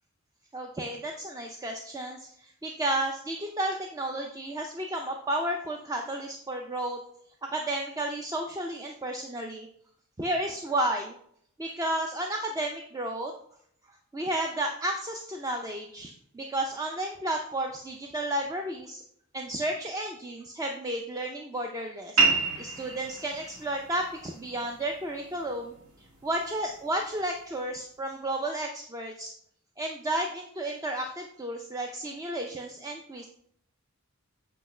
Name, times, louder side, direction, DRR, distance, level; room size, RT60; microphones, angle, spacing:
voice 1, 0.5-7.0 7.4-9.7 10.2-11.1 11.6-13.3 14.1-19.0 19.3-22.2 22.6-25.7 26.2-29.3 29.8-33.3, right 1 dB, 15° right, 3 dB, 0.4 m, -32 dB
sound 1, 22.2-27.2, right 3 dB, 70° right, 1.7 m, -31 dB
7.8 x 3.1 x 5.4 m, 0.67 s
head